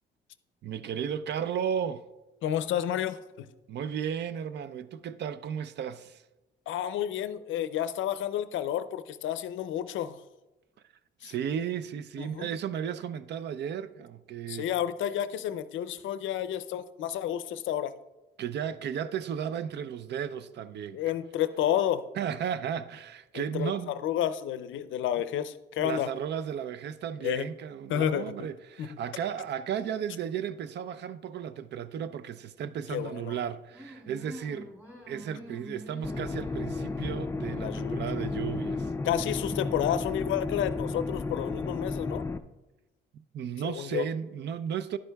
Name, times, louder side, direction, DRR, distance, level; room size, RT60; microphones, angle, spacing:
voice 1, 0.6-2.1 3.7-6.2 11.2-14.7 18.4-21.0 22.2-24.0 25.8-34.7 35.1-38.9 43.3-45.0, right 8 dB, 60° right, 0.5 m, -34 dB
voice 2, 2.4-3.5 6.7-10.2 11.2-11.3 12.2-12.5 14.5-17.9 20.9-22.1 23.3-26.1 27.2-27.5 27.9-28.3 28.8-29.0 32.9-33.4 37.5-38.0 39.0-42.2 43.6-44.0, left 10 dB, 75° left, 0.5 m, -30 dB
sound 1, 33.7-40.1, equal, 10° right, 3.1 m, -46 dB
sound 2, 36.0-42.4, left 3 dB, 15° left, 0.4 m, -33 dB
11.0 x 9.5 x 2.3 m
cardioid pair, 90°, 20 cm